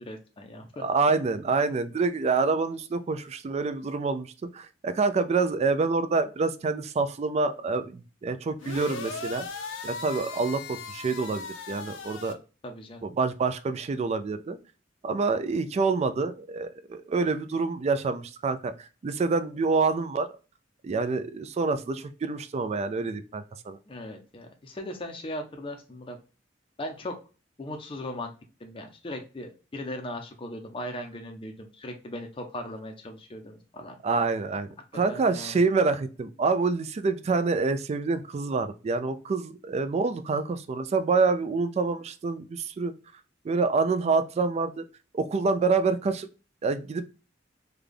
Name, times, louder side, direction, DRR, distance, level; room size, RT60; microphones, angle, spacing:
voice 1, 0.0-0.9 12.6-13.1 23.9-26.2 26.8-27.2 27.6-28.3 28.6-34.0 35.1-35.6, left 1 dB, 30° left, 3 dB, 0.5 m, -38 dB
voice 2, 0.8-4.3 4.5-9.5 9.8-12.4 13.0-14.6 15.0-20.3 20.8-23.8 34.0-42.9 43.4-44.8 45.1-46.3 46.6-47.1, right 4 dB, 35° right, 10 dB, 0.3 m, -27 dB
sound 1, 8.6-12.3, left 4 dB, 75° left, 0.6 m, -38 dB
3.3 x 2.3 x 3.6 m, 0.33 s
head